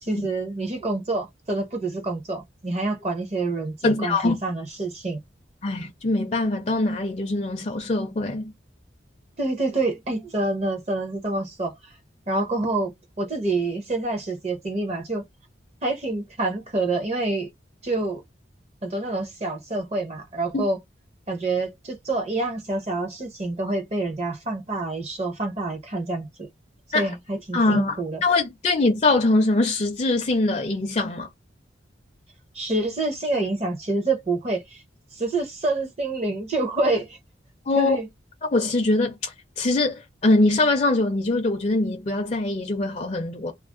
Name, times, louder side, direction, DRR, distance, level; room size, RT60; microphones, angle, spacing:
voice 1, 0.0-5.2 9.4-11.8 12.3-15.2 15.8-17.5 17.8-18.2 18.8-20.8 21.3-26.5 26.9-28.2 32.5-34.8 35.1-37.2 37.7-38.1, right 2 dB, 35° right, 0.7 m, -27 dB
voice 2, 3.8-4.4 5.6-8.5 20.5-20.6 26.9-27.1 27.5-31.3 37.7-38.0 38.5-43.5, left 2 dB, 35° left, 0.4 m, -23 dB
2.4 x 2.0 x 3.6 m
head